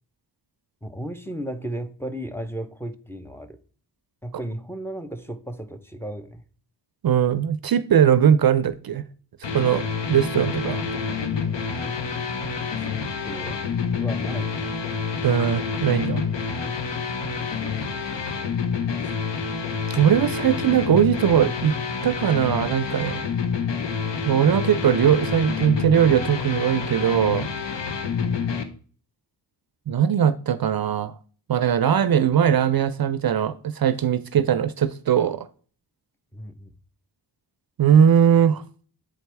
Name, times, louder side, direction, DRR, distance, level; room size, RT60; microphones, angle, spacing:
voice 1, 0.8-3.6 4.2-6.4 12.8-13.0 13.2-13.6 14.0-14.8 17.3-18.5 28.2-28.5 36.3-36.7, right 1 dB, 5° left, 0.6 m, -35 dB
voice 2, 7.0-9.0 9.5-9.8 10.1-10.8 15.2-16.2 19.9-21.7 22.0-23.2 24.3-27.5 29.9-31.1 31.5-35.5 37.8-38.6, right 9 dB, 55° right, 0.5 m, -20 dB
sound 1, 9.4-28.6, left 5 dB, 70° left, 0.9 m, -28 dB
7.6 x 4.5 x 3.3 m
cardioid pair, 55°, 45 cm